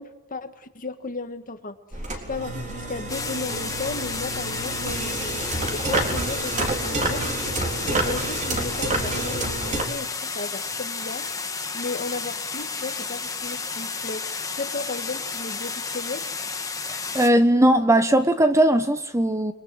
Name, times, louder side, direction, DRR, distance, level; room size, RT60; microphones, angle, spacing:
voice 1, 0.0-1.8 2.3-7.3 7.9-11.3 11.7-16.3, left 3 dB, 40° left, 1.8 m, -35 dB
sound 1, 1.9-9.8, right 2 dB, 35° right, 3.9 m, -28 dB
sound 2, 3.1-17.3, left 4 dB, 15° left, 1.8 m, -32 dB
voice 2, 17.1-19.5, right 1 dB, 15° right, 1.2 m, -18 dB
29.5 x 22.5 x 7.9 m
head